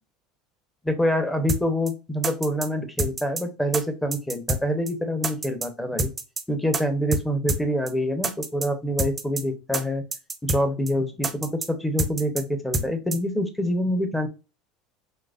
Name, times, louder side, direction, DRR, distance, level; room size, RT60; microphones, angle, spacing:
voice 1, 0.8-6.1 6.5-10.0 10.4-14.3, equal, 10° left, 8 dB, 0.8 m, -26 dB
sound 1, 1.5-1.6 1.9-2.0 2.2-2.7 3.0-3.4 3.7-3.8 4.1-4.6 4.9-5.0 5.2-5.7 6.0-6.4 6.7-6.8 7.1-7.2 7.5-7.6 7.9-8.0 8.2-8.7 9.0-9.4 9.7-9.8 10.1-10.6 10.9-11.0 11.2-11.7 12.0-12.4 12.7-12.9 13.1-13.2, right 2 dB, 20° right, 0.7 m, -27 dB
3.9 x 2.9 x 2.5 m, 0.30 s
supercardioid pair, 105°, 0 cm